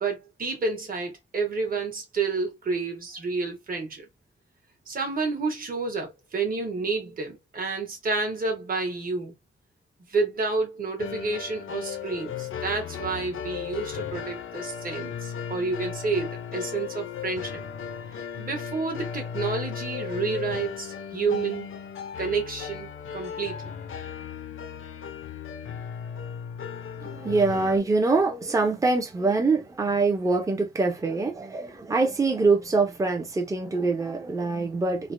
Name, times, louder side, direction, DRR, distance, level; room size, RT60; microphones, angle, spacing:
voice 1, 0.0-4.1 4.9-9.3 10.1-17.6 18.4-21.7 22.2-23.7, right 4 dB, 45° right, 1.1 m, -30 dB
sound 1, 11.0-27.8, left 7 dB, 85° left, 0.6 m, -36 dB
voice 2, 27.0-35.1, right 3 dB, 15° right, 0.5 m, -24 dB
3.2 x 2.1 x 2.5 m
wide cardioid pair, 175°, 20 cm